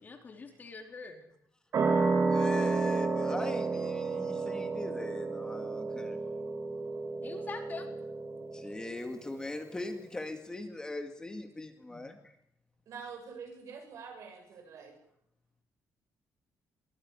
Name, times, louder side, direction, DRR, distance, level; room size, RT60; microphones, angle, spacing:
voice 1, 0.0-1.3 7.2-7.9 11.9-12.1, left 4 dB, 30° left, 3 dB, 4.1 m, -44 dB
sound 1, 1.7-8.9, right 4 dB, 50° right, 3.8 m, -31 dB
voice 2, 2.3-6.2 8.5-12.4, left 2 dB, 15° left, 5 dB, 2.0 m, -40 dB
voice 3, 12.9-14.9, right 5 dB, 65° right, 4 dB, 7.7 m, -46 dB
23.0 x 15.0 x 9.9 m, 0.74 s
cardioid pair, 140°, 6 cm